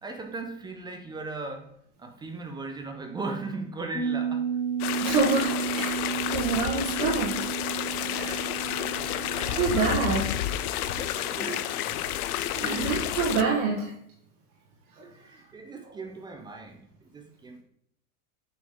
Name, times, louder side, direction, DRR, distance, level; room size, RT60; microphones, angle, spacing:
voice 1, 0.0-1.7 2.0-4.5 6.6-6.7 8.8-11.8 12.4-13.1 13.5-13.7 15.0-17.6, right 3 dB, 10° right, 5 dB, 0.4 m, -39 dB
sound 1, 3.9-12.2 12.6-12.7, right 7 dB, 20° left, 0.9 m, -33 dB
sound 2, 4.8-13.4, left 12 dB, 85° left, 0.6 m, -30 dB
voice 2, 5.0-5.9 6.2-7.4 8.1-8.4 9.6-10.3 12.4-13.9 15.0-15.1, right 4 dB, 75° right, -3 dB, 1.6 m, -27 dB
7.5 x 4.1 x 3.6 m, 0.71 s
supercardioid pair, 125°, 44 cm